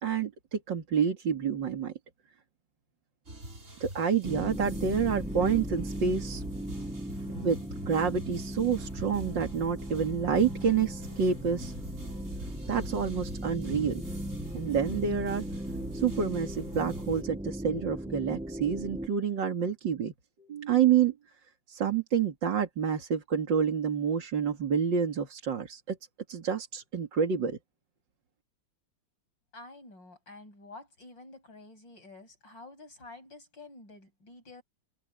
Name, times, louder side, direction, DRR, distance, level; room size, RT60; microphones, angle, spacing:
voice 1, 0.0-1.9 3.8-6.4 7.4-7.6 7.9-11.7 12.7-14.0 14.5-15.4 15.9-20.1 20.5-21.1 21.7-26.0 26.3-27.6, right 7 dB, 80° right, 2.9 m, -28 dB
sound 1, 3.3-17.2, right 1 dB, 40° right, 5.6 m, -44 dB
sound 2, 4.2-19.1, right 1 dB, 5° right, 0.7 m, -38 dB
voice 2, 29.5-34.6, left 2 dB, 80° left, 8.5 m, -49 dB
omnidirectional pair, 2.0 m